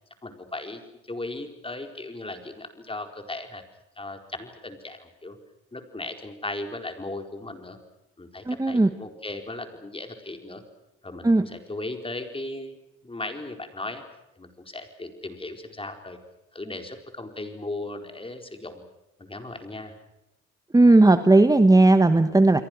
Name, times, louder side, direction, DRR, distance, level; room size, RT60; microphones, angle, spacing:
voice 1, 0.2-0.8 1.1-3.6 4.0-5.4 5.7-7.8 8.2-10.6 11.0-12.8 13.0-14.0 14.4-16.2 16.5-18.8 19.2-19.9, left 2 dB, 20° left, 5 dB, 4.5 m, -37 dB
voice 2, 8.5-8.9 11.2-11.5 20.7-22.6, right 2 dB, 10° right, 10 dB, 1.2 m, -16 dB
29.5 x 22.5 x 6.3 m, 0.93 s
cardioid pair, 90°, 30 cm